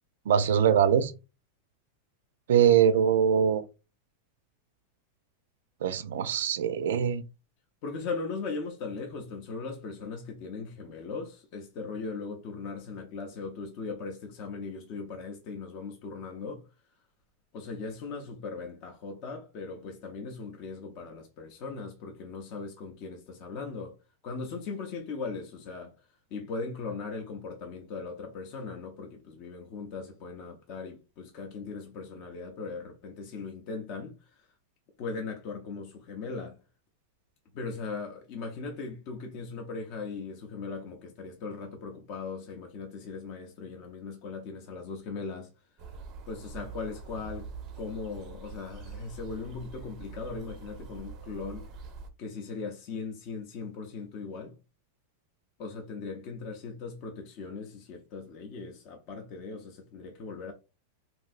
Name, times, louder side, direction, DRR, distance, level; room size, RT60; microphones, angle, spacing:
voice 1, 0.3-1.1 2.5-3.6 5.8-7.2, right 8 dB, 80° right, 0.4 m, -23 dB
voice 2, 7.8-16.6 17.5-23.9 24.2-25.9 26.3-34.1 35.0-36.6 37.5-45.5 46.3-47.5 47.8-51.7 52.2-54.5 55.6-60.5, left 4 dB, 35° left, 0.5 m, -39 dB
sound 1, 45.8-52.1, right 4 dB, 30° right, 0.5 m, -44 dB
3.2 x 2.6 x 2.4 m
supercardioid pair, 175°, 0 cm